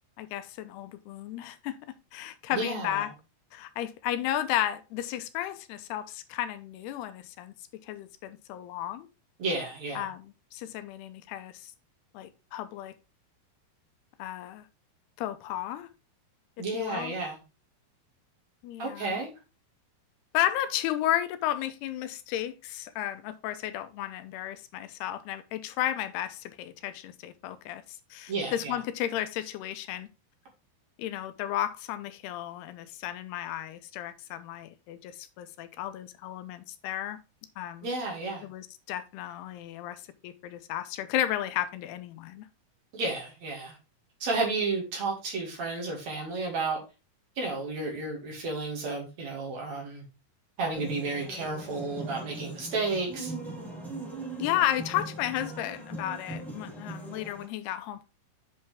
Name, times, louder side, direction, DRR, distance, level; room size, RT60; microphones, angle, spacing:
voice 1, 0.2-1.8 2.1-3.1 3.5-7.5 7.9-9.1 10.0-11.7 12.1-12.9 14.2-14.7 15.2-15.9 16.7-17.2 18.6-19.2 20.3-30.1 31.0-37.2 37.6-37.9 38.4-42.5 54.4-58.1, left 12 dB, 90° left, 2.8 m, -33 dB
voice 2, 2.5-3.1 9.4-10.1 16.6-17.4 18.8-19.3 28.3-28.8 37.8-38.5 42.9-43.8 44.2-46.8 47.4-50.0 50.6-53.3, right 3 dB, 50° right, 3.2 m, -32 dB
sound 1, 50.7-57.4, right 2 dB, ahead, 1.9 m, -40 dB
8.1 x 5.5 x 3.4 m
omnidirectional pair, 4.5 m